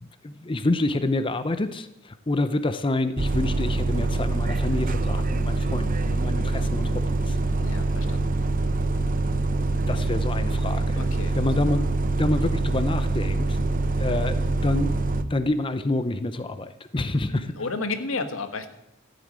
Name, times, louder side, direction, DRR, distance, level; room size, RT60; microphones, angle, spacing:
voice 1, 0.0-7.4 9.9-11.1 11.4-11.9 12.2-13.7 14.0-14.9 15.3-17.5, left 2 dB, 25° left, 11 dB, 0.6 m, -28 dB
Bus, 3.2-15.2, right 2 dB, 40° right, 0.7 m, -25 dB
voice 2, 7.6-8.4 10.9-11.6 17.2-18.7, left 3 dB, 80° left, 8 dB, 1.5 m, -34 dB
14.5 x 8.3 x 8.7 m, 0.87 s
head